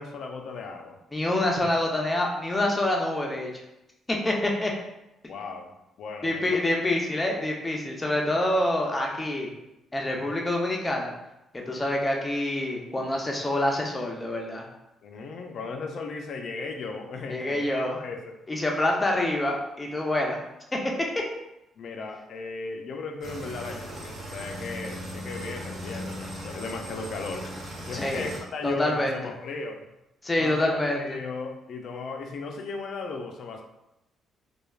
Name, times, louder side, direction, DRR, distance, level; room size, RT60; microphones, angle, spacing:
voice 1, 0.0-1.0 5.3-5.7 6.0-6.6 15.0-18.4 21.8-29.8 30.4-33.6, left 4 dB, 65° left, 3 dB, 0.4 m, -36 dB
voice 2, 1.1-3.5 4.1-4.7 6.2-9.5 9.9-11.1 11.7-14.7 17.3-18.0 18.5-20.4 20.7-20.9 27.9-28.3 28.6-29.1 30.2-31.0, left 1 dB, 20° left, -1 dB, 0.6 m, -26 dB
sound 1, 23.2-28.4, equal, 65° right, 1.3 m, -38 dB
3.1 x 2.3 x 2.3 m, 0.91 s
cardioid pair, 90°, 0 cm